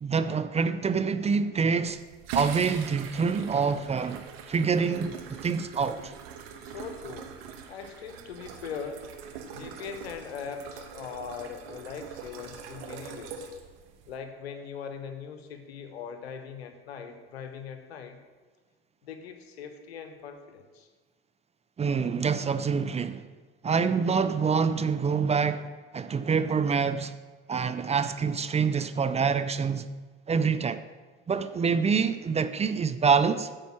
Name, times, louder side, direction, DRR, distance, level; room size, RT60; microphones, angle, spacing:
voice 1, 0.0-2.0 2.3-5.2 5.4-6.1 21.8-23.3 23.6-27.1 27.5-29.9 30.3-30.8 31.3-33.5, right 5 dB, 20° right, 0.5 m, -26 dB
sound 1, 1.8-14.2, right 7 dB, 75° right, 1.1 m, -42 dB
voice 2, 6.6-7.3 7.7-9.1 9.5-13.4 14.1-18.2 19.0-20.9, left 6 dB, 85° left, 1.1 m, -40 dB
9.2 x 4.8 x 7.3 m
hypercardioid pair, 75°, 30 cm